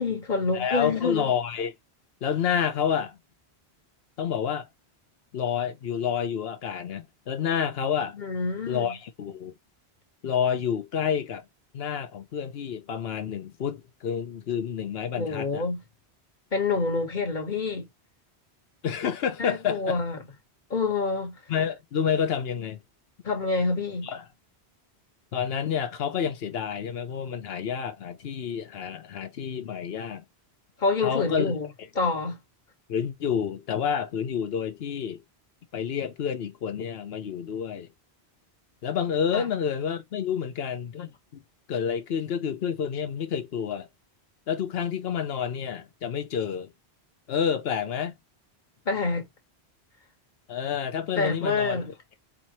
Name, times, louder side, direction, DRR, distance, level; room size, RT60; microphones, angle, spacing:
voice 1, 0.0-1.3 8.1-8.9 15.2-15.8 16.5-17.9 19.4-20.2 20.7-21.4 23.2-24.1 30.8-31.7 31.9-32.4 39.3-39.5 48.8-49.3 51.2-51.9, left 3 dB, 50° left, 1.5 m, -27 dB
voice 2, 0.5-1.7 2.2-3.2 4.2-4.7 5.3-8.2 8.7-9.5 10.2-11.4 11.7-15.6 18.8-20.0 21.5-22.8 24.0-24.2 25.3-30.2 31.0-31.5 32.9-35.2 35.7-37.9 38.8-41.4 41.7-43.9 44.5-46.7 47.3-48.1 50.5-51.8, left 8 dB, 70° left, 1.0 m, -29 dB
4.9 x 2.7 x 2.9 m
omnidirectional pair, 1.1 m